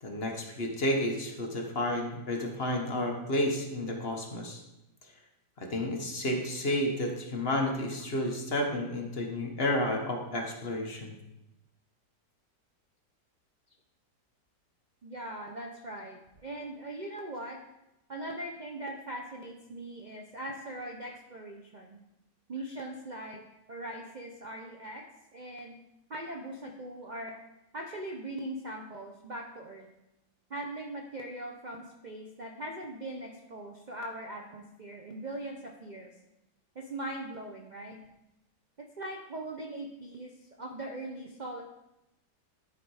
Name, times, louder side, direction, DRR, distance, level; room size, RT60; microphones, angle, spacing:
voice 1, 0.0-4.6 5.6-11.1, left 1 dB, 40° left, 2 dB, 1.1 m, -31 dB
voice 2, 15.0-17.6 18.1-22.0 22.5-23.4 23.7-25.0 25.3-25.8 26.1-27.4 27.7-29.9 30.5-36.1 36.8-38.0 39.0-40.3 40.6-41.6, right 1 dB, 80° right, 1 dB, 0.4 m, -40 dB
11.5 x 4.3 x 4.8 m, 0.90 s
omnidirectional pair, 1.8 m